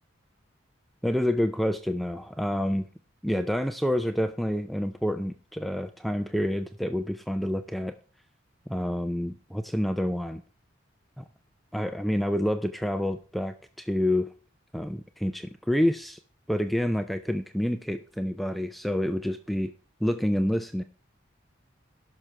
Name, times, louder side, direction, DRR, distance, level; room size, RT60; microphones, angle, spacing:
voice 1, 1.0-2.9 3.2-7.9 8.7-10.4 11.2-11.3 11.7-14.3 14.7-16.2 16.5-19.7 20.0-20.8, equal, ahead, 8 dB, 0.4 m, -28 dB
17.5 x 6.0 x 3.3 m, 0.38 s
head